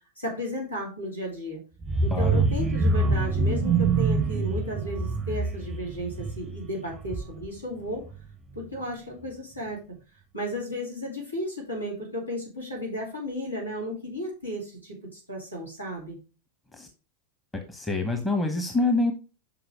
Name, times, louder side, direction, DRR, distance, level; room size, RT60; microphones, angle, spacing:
voice 1, 0.2-1.6 2.0-8.0 8.5-9.8 10.3-16.2, equal, 85° left, -3 dB, 2.8 m, -34 dB
sound 1, 1.8-7.6 8.0-8.2 8.5-8.6, right 3 dB, 15° right, 0.5 m, -25 dB
voice 2, 2.1-2.4 16.7-16.9 17.5-19.1, left 2 dB, 10° left, 4 dB, 0.9 m, -26 dB
6.1 x 4.9 x 4.9 m, 0.33 s
figure-of-eight pair, 90°, 0 cm